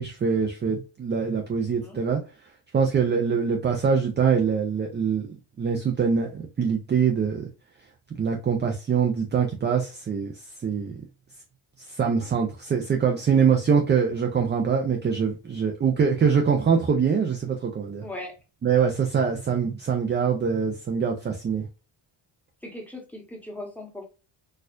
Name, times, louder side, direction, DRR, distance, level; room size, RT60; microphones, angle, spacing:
voice 1, 0.0-2.2 2.7-5.3 5.6-7.5 8.2-10.3 10.6-11.0 11.9-18.0 18.6-21.7, right 6 dB, 25° right, 0.4 m, -24 dB
voice 2, 1.6-2.0 18.0-18.3 22.6-24.1, left 1 dB, 5° left, 1.0 m, -39 dB
4.3 x 2.4 x 2.4 m
cardioid pair, 110°, 48 cm